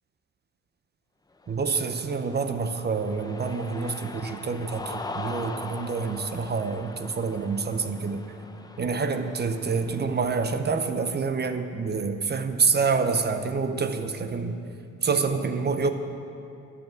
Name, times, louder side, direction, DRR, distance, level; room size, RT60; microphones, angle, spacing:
Cheering, 1.4-10.7, left 2 dB, 15° left, 0.6 m, -41 dB
voice 1, 1.5-8.2 8.8-14.6 15.0-15.9, right 5 dB, 35° right, 8 dB, 0.7 m, -27 dB
9.6 x 7.3 x 7.6 m, 2.6 s
cardioid pair, 90°, 30 cm